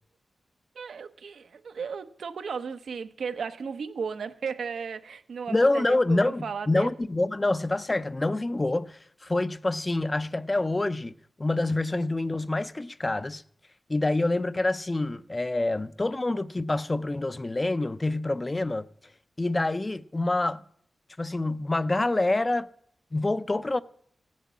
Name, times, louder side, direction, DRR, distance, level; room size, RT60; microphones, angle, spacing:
voice 1, 0.7-6.9, right 6 dB, 80° right, 0.9 m, -35 dB
voice 2, 5.5-13.4 13.9-18.9 19.4-20.6 21.2-22.7 23.1-23.8, left 2 dB, 25° left, 0.5 m, -26 dB
16.0 x 7.4 x 8.4 m
wide cardioid pair, 90°, 0 cm